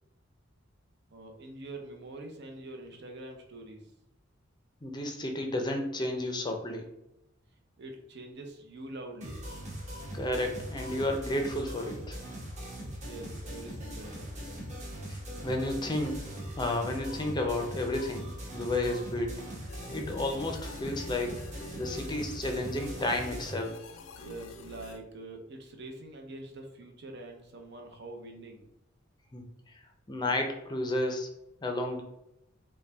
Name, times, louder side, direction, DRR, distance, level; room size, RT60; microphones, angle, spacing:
voice 1, 1.1-3.9 7.8-9.4 13.0-14.4 24.2-28.7, right 2 dB, 55° right, 3 dB, 0.8 m, -45 dB
voice 2, 4.8-6.9 10.1-12.2 15.1-16.2 16.6-19.4 19.9-21.4 21.8-23.8 29.3-29.5 29.7-29.8 30.1-31.3 31.6-32.0, left 1 dB, 20° left, 3 dB, 0.6 m, -32 dB
sound 1, 9.2-23.5, equal, 35° right, 1.3 m, -41 dB
sound 2, 19.7-25.0, left 3 dB, 85° left, 0.5 m, -47 dB
5.3 x 2.3 x 3.4 m, 0.86 s
head